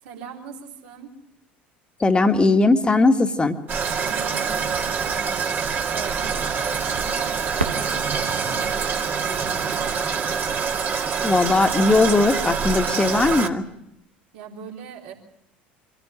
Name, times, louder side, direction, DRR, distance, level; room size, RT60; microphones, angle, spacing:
voice 1, 0.0-1.1 3.9-10.3 14.3-15.1, right 6 dB, 65° right, 0 dB, 3.6 m, -41 dB
voice 2, 2.0-3.6 11.2-13.6, left 3 dB, 15° left, 7 dB, 1.8 m, -18 dB
Toilet flush, 3.7-13.5, right 6 dB, 35° right, 2.0 m, -25 dB
Fireworks, 7.6-10.3 11.0-11.1 11.8-12.2 14.1-14.3, right 2 dB, 90° right, 1.3 m, -34 dB
25.0 x 15.0 x 9.0 m, 0.81 s
figure-of-eight pair, 65°, 6 cm